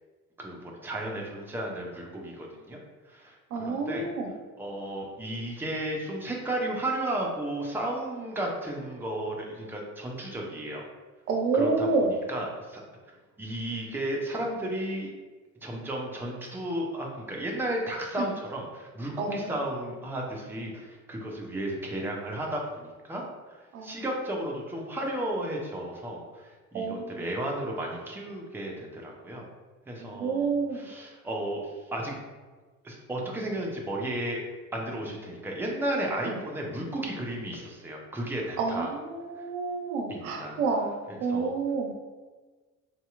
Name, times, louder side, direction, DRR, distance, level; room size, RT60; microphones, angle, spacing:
voice 1, 0.4-2.8 3.1-4.1 4.6-10.9 11.5-12.8 13.4-15.1 15.6-23.2 23.8-29.4 29.9-32.2 32.8-34.4 34.7-38.9 39.4-39.5 40.1-40.6 41.1-41.6, right 1 dB, 5° right, -1 dB, 0.6 m, -34 dB
voice 2, 3.5-4.3 11.3-12.1 18.2-18.3 19.2-19.5 23.7-23.9 26.7-27.2 30.0-30.8 36.3-36.4 38.6-40.9 41.2-41.9, right 4 dB, 75° right, 2 dB, 0.6 m, -29 dB
4.0 x 2.8 x 2.3 m, 1.3 s
figure-of-eight pair, 55°, 43 cm